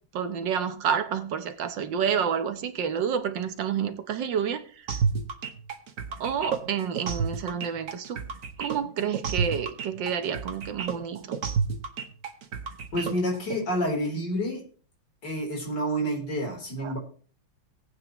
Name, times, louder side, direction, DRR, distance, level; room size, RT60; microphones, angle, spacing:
voice 1, 0.1-4.6 6.2-8.2 8.6-11.4 16.8-16.9, right 7 dB, 70° right, 1.6 m, -29 dB
sound 1, 4.9-13.6, right 6 dB, 45° right, 1.4 m, -30 dB
voice 2, 12.9-14.6 15.2-17.0, equal, 60° left, 4.3 m, -28 dB
19.0 x 8.7 x 3.1 m
omnidirectional pair, 2.1 m